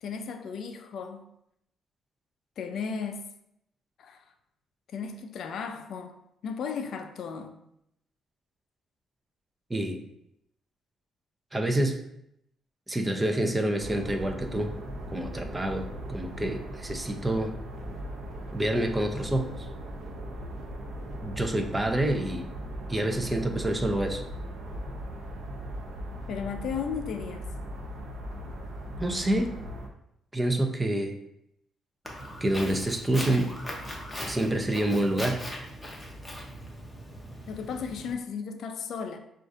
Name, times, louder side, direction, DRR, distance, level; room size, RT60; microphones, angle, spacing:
voice 1, 0.0-1.2 2.6-3.2 4.0-4.2 4.9-7.6 26.3-27.5 37.5-39.2, left 6 dB, 70° left, 7 dB, 0.4 m, -35 dB
voice 2, 9.7-10.0 11.5-12.0 12.9-14.7 15.1-17.5 18.5-19.7 21.2-22.5 22.9-24.2 29.0-29.5 30.3-31.1 32.4-33.5 34.2-35.5, right 1 dB, 15° right, 5 dB, 0.6 m, -27 dB
sound 1, 13.8-29.9, equal, 65° right, 0.7 m, -38 dB
Walk footsteps, 32.0-38.1, equal, 15° left, 0.9 m, -39 dB
6.0 x 2.5 x 2.6 m, 0.79 s
cardioid pair, 90°, 0 cm